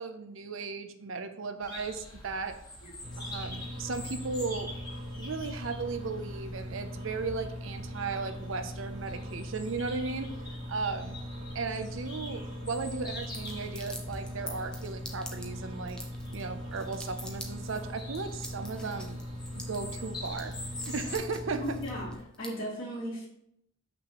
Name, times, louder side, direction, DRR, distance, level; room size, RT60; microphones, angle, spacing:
voice 1, 0.0-2.6 3.2-4.7 5.2-10.3 10.7-11.2 11.5-16.0 16.3-19.2 19.5-20.5 20.8-21.8, right 4 dB, 70° right, 8 dB, 0.6 m, -36 dB
sound 1, 1.6-21.2, left 1 dB, 20° left, 1.6 m, -47 dB
sound 2, 3.0-22.2, equal, 35° right, 1.2 m, -40 dB
sound 3, 13.1-22.5, left 1 dB, 5° left, 0.7 m, -46 dB
voice 2, 21.6-22.1 22.4-23.2, equal, 55° left, -12 dB, 2.7 m, -36 dB
6.7 x 6.0 x 3.0 m, 0.76 s
head